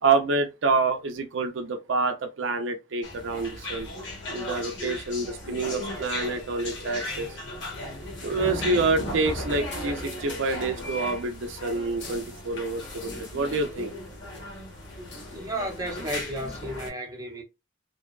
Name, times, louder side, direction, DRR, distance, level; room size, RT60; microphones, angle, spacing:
voice 1, 0.0-3.9 4.3-7.3 8.2-14.0, right 3 dB, 75° right, 0.5 m, -27 dB
sound 1, 3.0-16.9, left 1 dB, 65° left, 0.9 m, -36 dB
voice 2, 15.3-17.4, right 1 dB, 20° right, 0.7 m, -33 dB
2.6 x 2.2 x 2.3 m
head